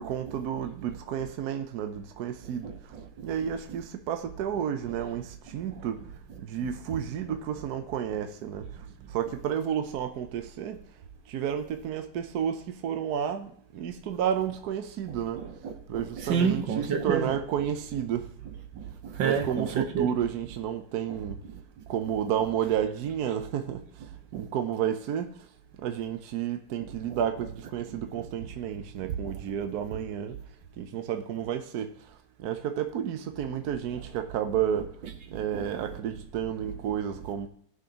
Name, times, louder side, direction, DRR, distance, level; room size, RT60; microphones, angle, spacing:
voice 1, 0.0-2.7 3.2-6.0 6.4-8.7 9.1-10.8 11.3-15.4 15.9-18.3 19.2-21.4 21.9-23.8 24.3-25.3 25.8-30.4 30.8-31.9 32.4-34.9 35.3-37.5, right 9 dB, 65° right, 1.2 m, -31 dB
voice 2, 2.4-3.1 5.7-5.8 6.9-7.0 15.4-17.4 18.7-20.1 24.3-24.4 27.1-27.2 29.0-29.3 35.5-35.9, right 6 dB, 80° right, 1.8 m, -30 dB
17.0 x 6.3 x 2.9 m
omnidirectional pair, 2.0 m